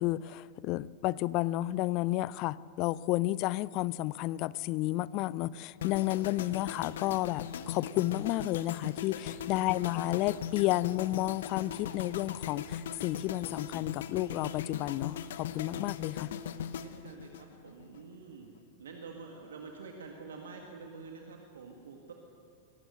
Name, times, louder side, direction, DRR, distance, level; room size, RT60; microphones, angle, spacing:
voice 1, 0.0-16.3, left 17 dB, 40° left, 0.5 m, -31 dB
sound 1, 5.8-18.0 18.3-18.6, left 8 dB, 60° left, 0.9 m, -40 dB
voice 2, 6.2-6.6 7.9-8.0 9.6-10.0 10.4-10.6 16.8-18.5 18.8-22.1, right 4 dB, 65° right, 1.8 m, -48 dB
24.0 x 18.5 x 6.6 m
figure-of-eight pair, 90°, 0 cm